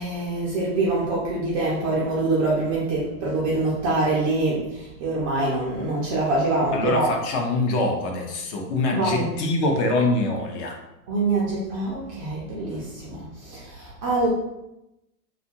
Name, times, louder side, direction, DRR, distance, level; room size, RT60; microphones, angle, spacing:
voice 1, 0.0-4.6 5.0-7.1 8.9-9.3 11.1-14.3, right 2 dB, 25° right, -6 dB, 0.3 m, -25 dB
voice 2, 6.7-10.8, left 2 dB, 45° left, 2 dB, 0.6 m, -24 dB
2.7 x 2.4 x 2.7 m, 0.90 s
hypercardioid pair, 125°, 47 cm